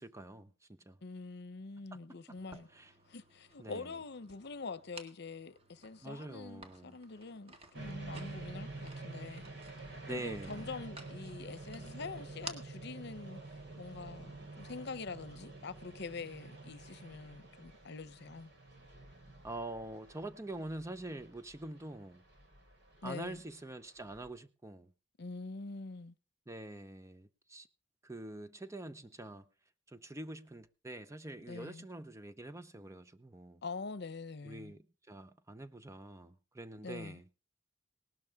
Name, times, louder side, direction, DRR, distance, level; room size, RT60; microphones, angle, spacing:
voice 1, 0.0-1.0 2.7-2.9 3.6-3.9 6.0-7.0 10.1-10.7 19.4-22.3 23.0-24.9 26.5-27.7 28.0-29.5 29.9-33.6 34.4-37.3, right 2 dB, 15° right, 0.7 m, -45 dB
voice 2, 1.0-2.7 3.1-9.5 10.1-13.4 13.8-18.5 23.0-23.4 25.2-26.2 31.5-31.9 33.6-34.7 36.8-37.2, left 4 dB, 60° left, 0.8 m, -45 dB
sound 1, 2.4-14.8, right 3 dB, 35° right, 1.8 m, -55 dB
sound 2, 7.7-24.3, right 2 dB, 65° right, 4.0 m, -49 dB
18.5 x 12.5 x 3.6 m
head